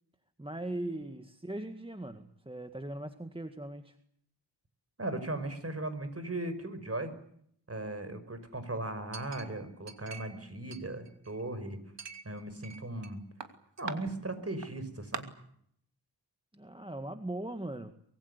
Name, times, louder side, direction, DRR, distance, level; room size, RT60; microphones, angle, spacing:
voice 1, 0.4-4.0 16.5-17.9, right 1 dB, 10° right, 7 dB, 1.8 m, -39 dB
voice 2, 5.0-7.1 7.7-11.8 12.3-13.2 13.8-15.2, right 2 dB, 35° right, 11 dB, 5.5 m, -37 dB
Chink clink, 9.1-10.4 10.7-11.5 12.0-13.1 13.4-14.0 14.6-14.7 15.1-15.2, right 6 dB, 70° right, 2.8 m, -43 dB
25.0 x 22.5 x 8.2 m, 0.69 s
wide cardioid pair, 75°, 44 cm